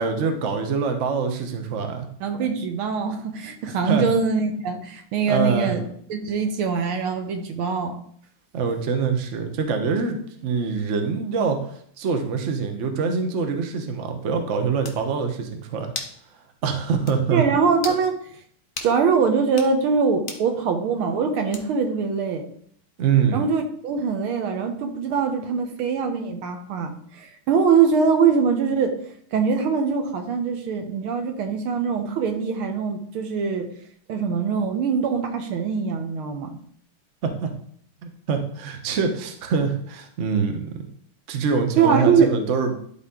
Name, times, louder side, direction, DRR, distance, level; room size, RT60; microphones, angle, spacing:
voice 1, 0.0-2.1 3.8-4.1 5.3-5.7 8.5-15.9 16.6-17.4 23.0-23.4 37.2-37.5 38.0-40.9 41.3-42.8, right 5 dB, 45° right, 5 dB, 1.0 m, -24 dB
voice 2, 2.2-5.8 6.1-8.0 17.3-18.2 18.8-22.4 23.3-29.0 29.3-33.7 34.1-36.6 41.8-42.3, right 5 dB, 75° right, 6 dB, 1.8 m, -23 dB
sound 1, 14.4-14.5 14.8-15.0 15.9-16.2 16.6-16.7 17.1-17.2 17.8-18.0 18.8-18.9 19.5-19.7 20.3-20.5 21.5-21.9, left 4 dB, 45° left, 0.7 m, -35 dB
11.5 x 4.2 x 3.7 m, 0.62 s
omnidirectional pair, 2.4 m